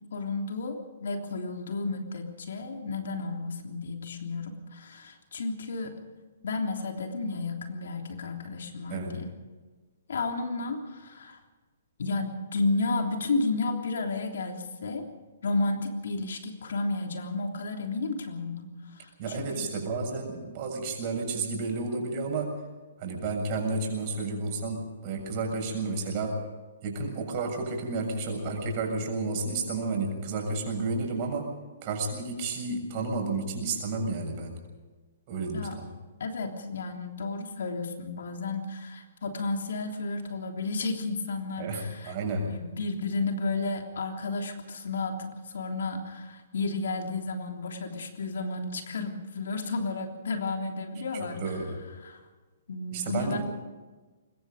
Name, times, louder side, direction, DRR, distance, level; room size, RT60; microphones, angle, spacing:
voice 1, 0.1-5.9 6.4-9.3 10.1-11.4 12.0-15.1 15.4-19.7 35.5-35.7 36.2-51.4 52.0-52.2 52.7-53.4, left 3 dB, 70° left, 3 dB, 3.3 m, -32 dB
voice 2, 19.2-22.5 23.0-26.4 26.8-31.5 31.8-34.6 35.3-35.9 41.6-42.5 51.1-51.8 52.9-53.4, right 3 dB, 40° right, 2 dB, 7.2 m, -31 dB
24.0 x 21.5 x 5.2 m, 1.3 s
hypercardioid pair, 130°, 0 cm